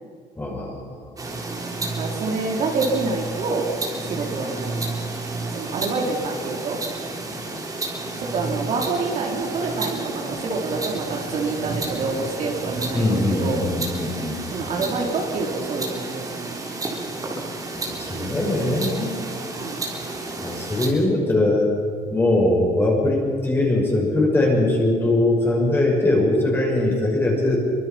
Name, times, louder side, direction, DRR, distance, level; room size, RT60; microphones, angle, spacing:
voice 1, 0.4-1.1 12.9-14.4 17.7-19.1 20.4-21.7 22.1-27.6, left 1 dB, 15° left, -1 dB, 5.9 m, -21 dB
sound 1, 1.2-20.9, right 2 dB, 20° right, 3.6 m, -31 dB
voice 2, 1.8-3.7 4.0-4.8 5.5-6.8 8.2-13.6 14.5-16.5 18.1-18.4 19.6-19.8, right 4 dB, 45° right, 0 dB, 3.7 m, -27 dB
26.0 x 24.0 x 5.9 m, 2.1 s
cardioid pair, 165°, 16 cm